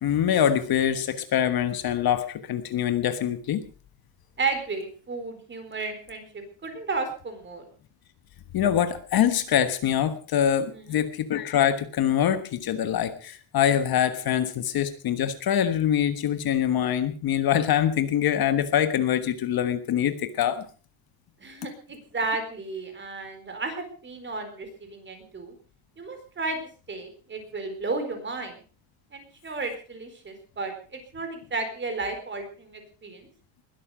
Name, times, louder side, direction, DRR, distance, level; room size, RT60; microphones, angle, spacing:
voice 1, 0.0-3.6 8.5-20.6, left 9 dB, 50° left, 10 dB, 1.4 m, -24 dB
voice 2, 4.4-7.7 10.7-11.0 21.4-25.5 26.0-26.6 26.9-28.5 29.1-33.3, right 3 dB, 25° right, 7 dB, 4.3 m, -33 dB
21.0 x 12.5 x 5.0 m, 0.39 s
cardioid pair, 170°, 48 cm